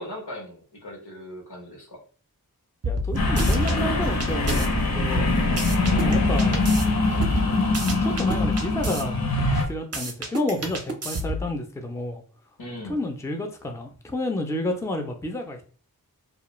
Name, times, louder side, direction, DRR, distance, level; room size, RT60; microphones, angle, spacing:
voice 1, 0.0-2.0 5.9-6.2 12.6-13.0, left 1 dB, 90° left, 0 dB, 1.0 m, -39 dB
voice 2, 2.8-4.7 4.9-5.3 6.0-6.6 8.0-9.2 9.5-12.2 12.9-15.6, left 1 dB, 10° left, 4 dB, 0.4 m, -30 dB
sound 1, 2.8-3.8 4.2-6.8 7.2-9.0 9.4-11.5, right 1 dB, 40° right, 0.5 m, -29 dB
sound 2, 3.2-9.7, left 2 dB, 65° left, 0.8 m, -23 dB
2.3 x 2.1 x 3.0 m, 0.39 s
wide cardioid pair, 50°, 38 cm